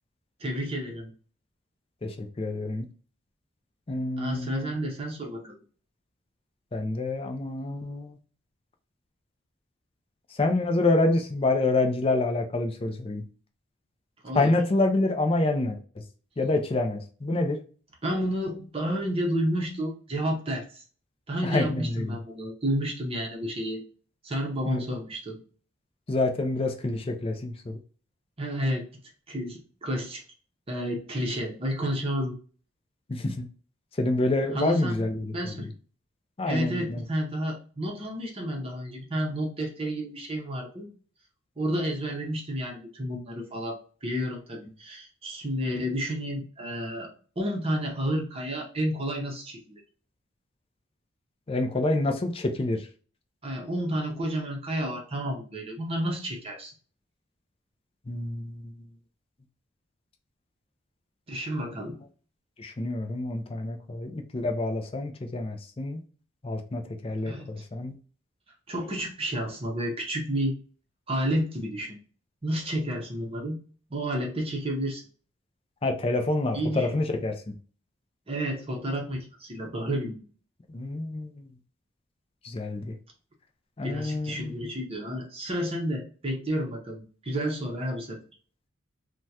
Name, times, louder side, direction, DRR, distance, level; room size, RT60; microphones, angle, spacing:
voice 1, 0.4-1.1 4.2-5.6 14.2-14.6 18.0-20.8 21.3-23.8 24.2-25.4 28.4-28.9 29.3-30.2 30.7-32.3 34.5-35.0 35.3-35.7 36.5-40.9 41.6-47.1 47.4-49.6 53.4-56.7 61.3-62.0 67.3-67.5 68.7-70.6 71.1-72.0 72.4-73.6 73.9-75.0 76.5-77.0 78.3-80.2 83.8-88.2, equal, 25° right, 0.7 m, -31 dB
voice 2, 2.0-2.9 3.9-4.7 6.7-8.2 10.3-13.2 14.3-15.8 16.4-17.6 21.4-22.2 24.7-25.0 26.1-27.8 33.1-33.5 34.0-35.5 36.4-37.0 51.5-52.9 58.1-58.7 62.6-66.0 66.4-67.9 75.8-77.5 80.7-81.5 82.4-83.0 83.8-84.7, left 2 dB, 25° left, 0.4 m, -27 dB
3.5 x 2.2 x 2.7 m
head